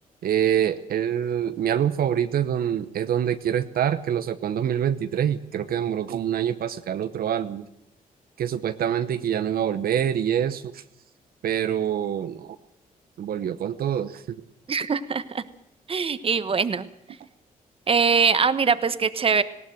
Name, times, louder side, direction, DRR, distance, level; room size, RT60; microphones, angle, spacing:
voice 1, 0.2-7.7 8.4-10.8 11.4-12.6 13.2-14.4, right 9 dB, 80° right, 10 dB, 1.0 m, -25 dB
voice 2, 14.7-15.4 15.9-16.9 17.9-19.4, right 5 dB, 40° right, 13 dB, 1.2 m, -22 dB
19.5 x 17.5 x 7.8 m, 0.80 s
cardioid pair, 105°, 15 cm